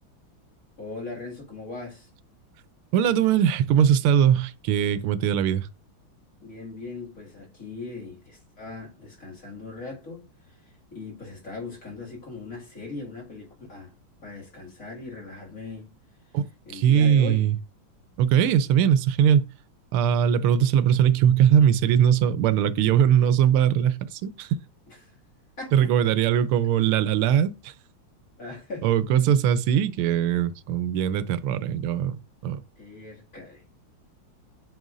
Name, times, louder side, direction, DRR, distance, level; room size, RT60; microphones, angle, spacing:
voice 1, 0.8-2.1 6.4-10.6 10.9-13.9 14.2-15.9 16.7-17.4 24.9-25.0 25.6-25.9 28.4-28.9 32.8-33.6, left 3 dB, 40° left, 2.5 m, -39 dB
voice 2, 2.9-5.7 16.3-16.4 16.7-17.6 18.2-19.5 19.9-24.5 25.7-27.7 28.8-32.2 32.4-32.6, right 9 dB, 90° right, 1.5 m, -21 dB
9.3 x 6.0 x 2.5 m
omnidirectional pair, 2.3 m